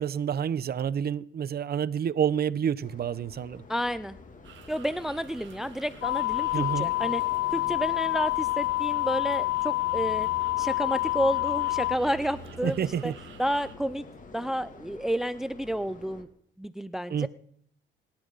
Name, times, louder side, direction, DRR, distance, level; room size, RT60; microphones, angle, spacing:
voice 1, 0.0-3.6 6.5-6.9 12.6-13.2 17.1-17.3, right 8 dB, 50° right, 0.8 m, -28 dB
sound 1, 2.8-16.2, left 2 dB, 40° left, 2.7 m, -46 dB
voice 2, 3.7-4.2 4.7-7.2 7.5-10.3 10.6-13.1 13.4-14.1 14.3-16.3 16.6-17.3, equal, ahead, 0.5 m, -30 dB
sound 2, 4.4-13.8, right 8 dB, 70° right, 2.0 m, -51 dB
sound 3, 6.0-12.0, left 19 dB, 70° left, 0.5 m, -27 dB
24.5 x 13.0 x 4.1 m
cardioid pair, 90°, 20 cm